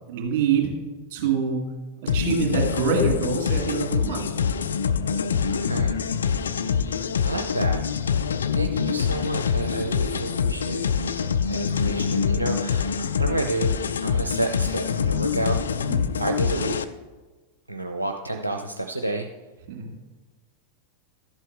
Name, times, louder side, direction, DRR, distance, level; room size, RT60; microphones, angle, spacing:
voice 1, 0.1-0.7 1.1-1.6 2.0-4.4 6.6-6.8 15.7-16.1 19.7-19.9, right 6 dB, 45° right, 1 dB, 2.4 m, -26 dB
sound 1, 2.1-16.8, left 6 dB, 70° left, 0.4 m, -25 dB
voice 2, 5.5-6.0 7.2-7.9 8.5-11.2 11.5-12.9 13.2-13.7 14.0-15.6 16.2-16.9 17.7-19.3, right 2 dB, 85° right, 4 dB, 0.5 m, -29 dB
12.0 x 8.2 x 3.5 m, 1.2 s
figure-of-eight pair, 90°, 0 cm